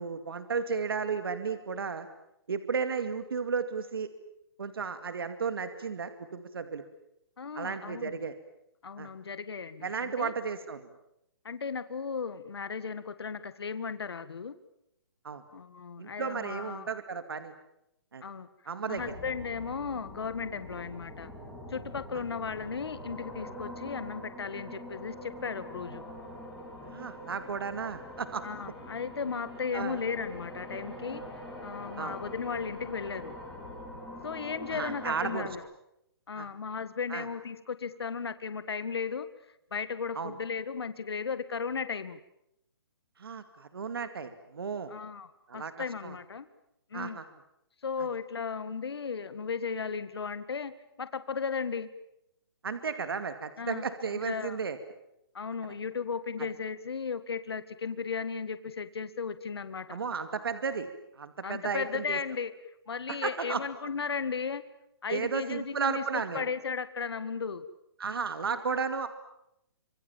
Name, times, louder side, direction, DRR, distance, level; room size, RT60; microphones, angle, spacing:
voice 1, 0.0-2.1 2.5-4.1 4.6-6.8 7.5-8.4 9.0-9.1 9.8-10.9 15.2-15.4 16.0-17.5 18.1-18.2 18.7-19.2 26.8-28.4 29.7-30.0 32.0-32.2 34.7-35.5 36.4-36.5 37.1-37.3 40.1-40.3 43.2-44.9 45.5-45.7 46.0-46.2 46.9-47.2 48.0-48.1 52.6-54.8 56.4-56.5 59.9-60.9 61.2-62.2 63.1-63.6 65.1-66.5 68.0-69.1, right 5 dB, 65° right, 10 dB, 2.3 m, -34 dB
voice 2, 7.4-8.1 8.8-10.3 11.5-14.6 15.5-16.9 18.2-18.5 18.9-21.3 21.7-26.0 28.4-31.2 31.6-33.3 34.2-35.6 36.3-39.3 39.7-42.2 44.9-46.5 46.9-47.2 47.8-50.7 51.0-51.9 53.6-53.8 54.2-54.6 55.3-60.0 61.4-62.5 62.9-64.6 65.0-66.0 66.3-67.7, left 5 dB, 75° left, 13 dB, 1.8 m, -35 dB
sound 1, 18.9-35.5, left 1 dB, ahead, 4.4 m, -44 dB
28.0 x 26.0 x 7.5 m, 0.80 s
hypercardioid pair, 180°, 13 cm